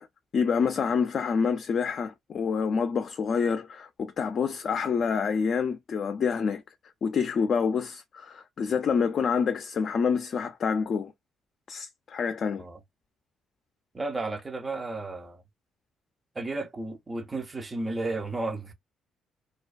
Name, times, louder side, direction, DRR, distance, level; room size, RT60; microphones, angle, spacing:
voice 1, 0.3-6.6 7.0-11.1 11.7-12.6, left 6 dB, 55° left, 0.4 m, -27 dB
voice 2, 13.9-15.4 16.3-18.7, right 2 dB, 25° right, 0.6 m, -33 dB
2.3 x 2.2 x 2.4 m
cardioid pair, 90°, 0 cm